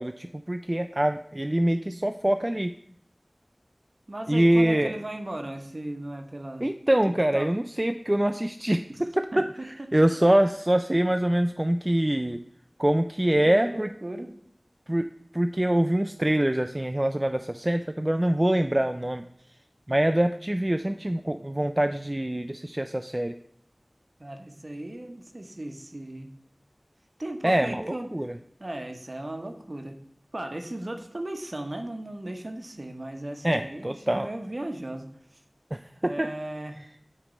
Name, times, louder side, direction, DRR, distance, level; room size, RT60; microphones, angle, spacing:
voice 1, 0.0-2.7 4.3-4.9 6.6-12.4 12.8-13.9 14.9-19.2 19.9-23.3 27.4-28.3 33.4-34.3 35.7-36.3, right 1 dB, 30° right, 7 dB, 0.3 m, -24 dB
voice 2, 4.1-6.6 7.0-7.5 8.9-9.0 9.3-9.4 13.3-14.3 24.2-26.3 27.2-28.1 28.6-30.0 30.3-35.1 36.0-36.8, right 1 dB, 55° right, 5 dB, 0.9 m, -36 dB
8.9 x 3.3 x 5.1 m, 0.67 s
wide cardioid pair, 40°, 0 cm